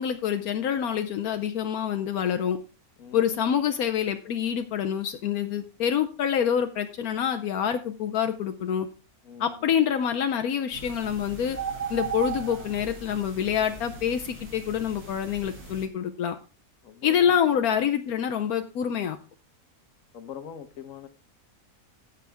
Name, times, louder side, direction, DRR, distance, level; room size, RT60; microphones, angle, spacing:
voice 1, 0.0-2.6 3.1-8.9 9.4-11.6 11.9-16.4 17.0-19.2, left 8 dB, 80° left, 8 dB, 1.2 m, -26 dB
voice 2, 3.0-3.6 9.2-9.7 12.2-12.4 16.8-17.6 20.1-21.1, left 8 dB, 60° left, 10 dB, 1.4 m, -43 dB
sound 1, 10.7-15.9, right 5 dB, 90° right, 2.8 m, -37 dB
16.5 x 6.4 x 3.4 m, 0.33 s
omnidirectional pair, 1.6 m